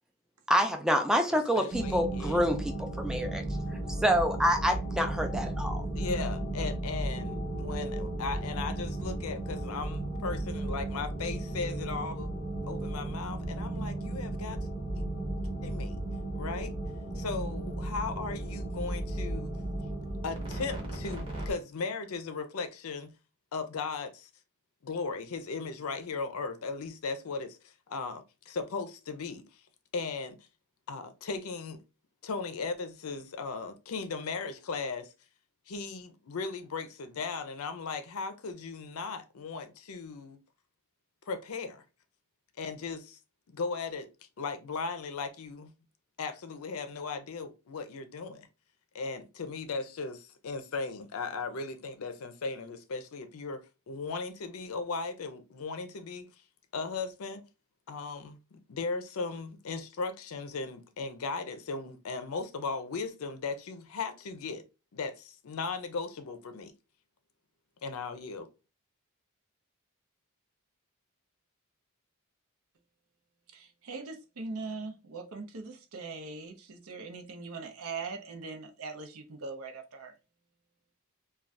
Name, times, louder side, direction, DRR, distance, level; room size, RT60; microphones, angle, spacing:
voice 1, 0.5-3.4 4.0-5.8, equal, 5° right, 0.4 m, -27 dB
voice 2, 1.3-2.5 5.9-12.3 12.7-14.6 15.6-16.0 16.3-16.7 17.2-19.5 20.2-23.1 23.5-24.3 24.8-29.6 29.9-30.4 30.9-31.8 32.2-35.1 35.7-40.4 41.3-41.8 42.6-43.2 43.5-44.1 44.4-45.7 46.2-48.5 48.9-56.3 56.7-57.4 57.9-64.6 64.9-66.7 67.8-68.5, left 4 dB, 70° left, 0.5 m, -37 dB
sound 1, 1.7-21.5, right 2 dB, 25° right, 0.8 m, -35 dB
voice 3, 73.5-80.1, right 4 dB, 70° right, 0.6 m, -41 dB
2.5 x 2.3 x 3.2 m
head